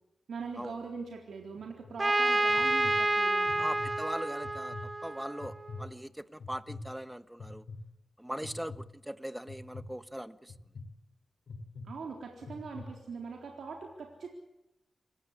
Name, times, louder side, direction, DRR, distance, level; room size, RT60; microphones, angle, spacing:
voice 1, 0.3-3.7 11.8-14.3, right 4 dB, 90° right, 1 dB, 3.8 m, -42 dB
sound 1, 1.6-1.9 2.5-2.9 3.5-3.9 4.4-4.9 5.4-5.8 6.4-6.8 7.4-7.8 8.4-8.8 9.5-9.8 10.5-10.8 11.5-11.8 12.4-12.8, left 4 dB, 85° left, 4.5 m, -44 dB
Trumpet, 2.0-5.7, right 2 dB, 25° right, 1.6 m, -29 dB
voice 2, 3.6-7.6 8.2-10.5, equal, 5° right, 13 dB, 1.3 m, -40 dB
28.0 x 15.5 x 8.5 m, 0.91 s
cardioid pair, 70°, 0 cm